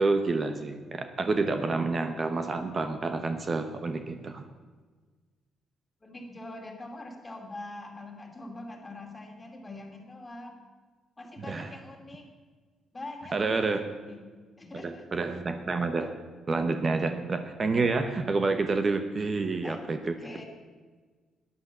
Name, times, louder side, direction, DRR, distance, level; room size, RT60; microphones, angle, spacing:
voice 1, 0.0-4.4 11.5-11.7 13.3-13.8 14.7-16.2 16.5-20.1, right 3 dB, 35° right, 8 dB, 1.0 m, -28 dB
voice 2, 6.0-10.6 11.2-12.3 12.9-14.2 14.6-15.1 16.9-17.0 19.6-19.8 20.2-20.5, left 2 dB, 20° left, 3 dB, 2.7 m, -43 dB
12.5 x 10.0 x 6.8 m, 1.4 s
cardioid pair, 90°, 0 cm